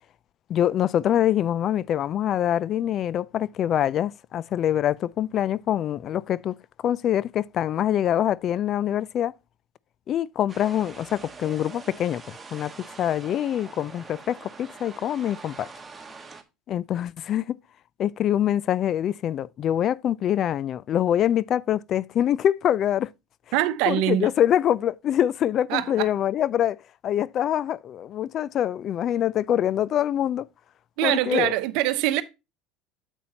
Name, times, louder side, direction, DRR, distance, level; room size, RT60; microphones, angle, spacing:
voice 1, 0.5-6.5 6.8-9.3 10.1-12.7 13.0-15.7 16.7-17.6 18.0-23.1 23.9-26.8 27.0-30.5 31.0-31.5, left 11 dB, 50° left, 0.4 m, -24 dB
sound 1, 10.5-16.4, right 4 dB, 20° right, 1.4 m, -44 dB
voice 2, 23.5-24.3 25.7-26.1 31.0-32.2, right 14 dB, 70° right, 0.8 m, -23 dB
8.5 x 7.2 x 2.8 m
hypercardioid pair, 85°, 0 cm